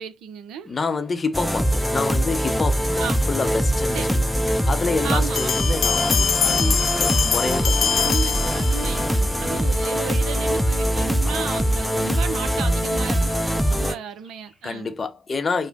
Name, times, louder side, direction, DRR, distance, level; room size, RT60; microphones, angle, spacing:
voice 1, 0.0-0.7 3.0-3.3 3.9-4.1 5.0-5.7 7.9-14.9, right 8 dB, 55° right, 0.5 m, -34 dB
Car passing by / Traffic noise roadway noise, 0.6-14.9, right 1 dB, 15° right, 2.2 m, -50 dB
voice 2, 0.7-3.0 3.3-8.1 11.3-11.5 13.7-14.0 14.6-15.7, left 4 dB, 30° left, 0.8 m, -28 dB
sound 1, 1.3-13.9, equal, ahead, 0.6 m, -22 dB
Bell, 5.4-9.1, left 8 dB, 50° left, 0.4 m, -24 dB
5.0 x 2.1 x 3.8 m
figure-of-eight pair, 45°, 0 cm